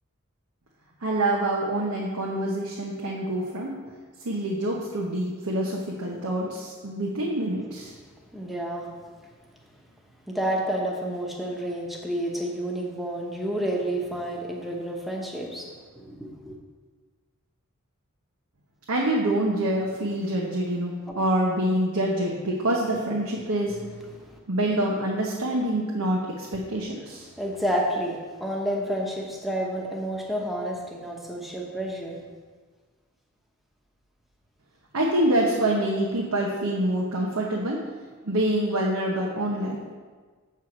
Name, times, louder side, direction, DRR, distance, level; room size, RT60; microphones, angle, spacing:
voice 1, 1.0-3.7 4.2-7.9 18.9-23.7 24.5-27.3 34.9-37.8 38.2-39.8, right 1 dB, 85° right, -3 dB, 1.0 m, -26 dB
voice 2, 8.3-8.9 10.3-16.6 24.2-24.3 27.4-32.2, right 1 dB, ahead, -1 dB, 1.0 m, -30 dB
7.6 x 4.7 x 6.0 m, 1.5 s
head